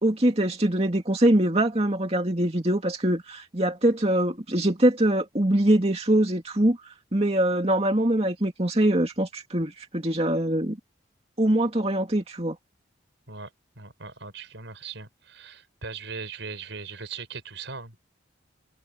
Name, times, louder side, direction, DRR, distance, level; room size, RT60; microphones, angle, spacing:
voice 1, 0.0-6.8 7.1-10.8 11.4-12.6, right 1 dB, 30° right, 2.5 m, -23 dB
voice 2, 13.8-18.0, right 5 dB, 75° right, 4.5 m, -39 dB
head